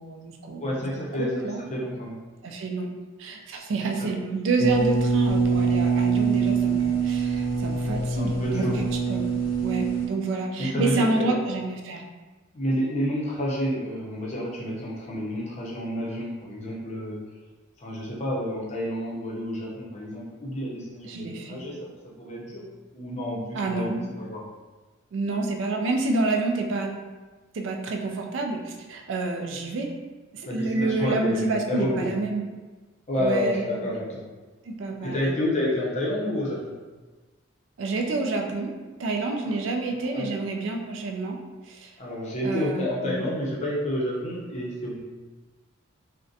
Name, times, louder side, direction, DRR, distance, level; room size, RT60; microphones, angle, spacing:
voice 1, 0.0-0.7 1.2-1.6 2.4-2.9 3.2-8.7 9.1-12.0 21.0-21.6 23.5-23.9 25.1-26.9 27.5-29.9 30.3-32.4 33.2-33.6 34.7-35.4 37.8-38.7 39.0-41.4 41.7-41.9 42.4-42.9, right 3 dB, 60° right, 2 dB, 0.3 m, -28 dB
voice 2, 0.6-1.4 1.7-2.2 4.1-4.2 8.1-8.8 10.6-11.3 12.5-17.2 17.8-22.6 22.9-24.4 30.4-32.1 33.1-34.2 35.0-36.7 39.4-39.5 40.1-40.3 42.0-45.0, equal, 35° left, -5 dB, 0.5 m, -29 dB
sound 1, 4.6-10.1, right 4 dB, 80° left, 0.6 m, -24 dB
2.4 x 2.1 x 2.5 m, 1.3 s
head